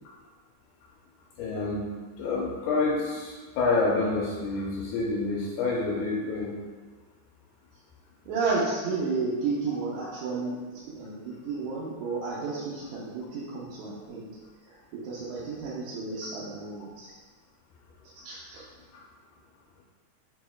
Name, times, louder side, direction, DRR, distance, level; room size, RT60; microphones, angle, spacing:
voice 1, 1.4-1.9 2.2-6.6, left 3 dB, 85° left, -3 dB, 2.1 m, -28 dB
voice 2, 8.3-10.6 10.9-14.3 14.7-17.2 18.2-18.6, right 4 dB, 75° right, -8 dB, 1.9 m, -32 dB
6.2 x 2.9 x 2.3 m, 1.4 s
omnidirectional pair, 3.5 m